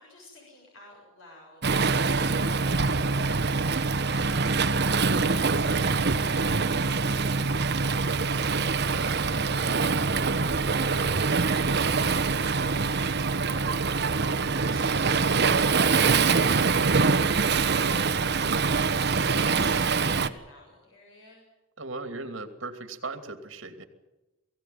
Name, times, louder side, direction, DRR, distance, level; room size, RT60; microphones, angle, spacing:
voice 1, 0.0-3.7 4.2-9.1 9.4-11.2 13.0-16.4 17.3-21.4, left 1 dB, 90° left, -2 dB, 7.5 m, -51 dB
Waves surf, 1.6-20.3, right 4 dB, 55° right, 1.1 m, -24 dB
voice 2, 21.8-23.8, right 3 dB, 70° right, 8 dB, 2.7 m, -38 dB
22.5 x 16.5 x 9.4 m, 1.0 s
head